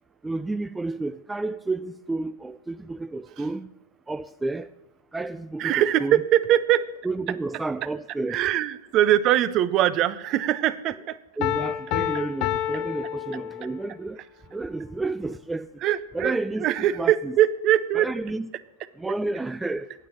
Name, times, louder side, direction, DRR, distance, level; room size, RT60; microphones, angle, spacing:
voice 1, 0.2-3.7 4.1-4.7 5.1-6.2 7.0-8.4 11.4-14.2 14.5-15.7 16.1-16.7 17.0-17.3 17.9-18.5 19.0-19.9, right 2 dB, 10° right, 0.3 m, -30 dB
voice 2, 5.6-6.9 8.3-11.2 15.8-18.1, right 12 dB, 40° right, 0.7 m, -22 dB
Piano, 11.4-14.0, left 12 dB, 45° left, 0.6 m, -29 dB
9.1 x 8.7 x 8.6 m
hypercardioid pair, 105°, 0 cm